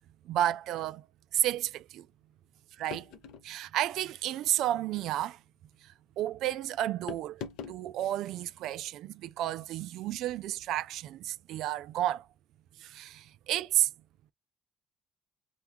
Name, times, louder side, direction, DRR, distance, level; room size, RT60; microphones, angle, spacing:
voice 1, 0.3-1.1 1.3-2.1 2.8-3.1 3.4-5.4 5.8-7.4 7.7-12.3 12.8-13.9, right 13 dB, 75° right, 0.3 m, -31 dB
sound 1, 2.9-3.5 4.8-5.1 7.1-7.8, left 6 dB, 85° left, 0.5 m, -42 dB
2.8 x 2.3 x 3.5 m
cardioid pair, 85°, 0 cm